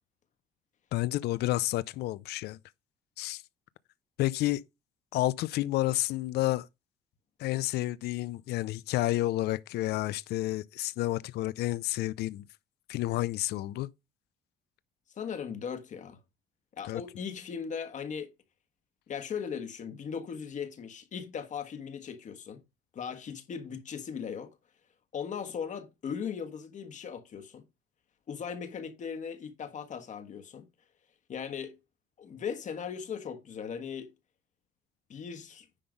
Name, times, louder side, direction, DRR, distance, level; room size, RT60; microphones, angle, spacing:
voice 1, 0.9-2.6 3.2-3.4 4.2-4.6 5.1-6.7 7.4-12.4 12.9-13.9 16.8-17.0, left 17 dB, 75° left, 0.5 m, -30 dB
voice 2, 15.2-16.2 16.8-18.3 19.1-22.6 22.9-24.6 25.1-27.6 28.3-30.7 31.3-31.8 32.2-34.1 35.1-35.7, left 7 dB, 45° left, 1.5 m, -38 dB
10.0 x 3.9 x 5.1 m
cardioid pair, 110°, 17 cm